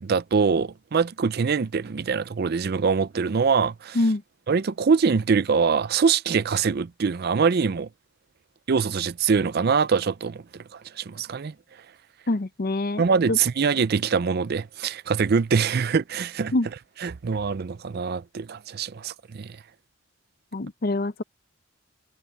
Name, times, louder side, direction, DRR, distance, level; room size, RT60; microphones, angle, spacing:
voice 1, 0.0-4.0 4.5-7.9 8.7-10.4 11.0-11.5 13.0-16.5 17.0-19.6, right 5 dB, 50° right, 0.5 m, -23 dB
voice 2, 12.3-13.4 16.5-16.7 20.5-21.2, left 2 dB, 45° left, 0.7 m, -25 dB
head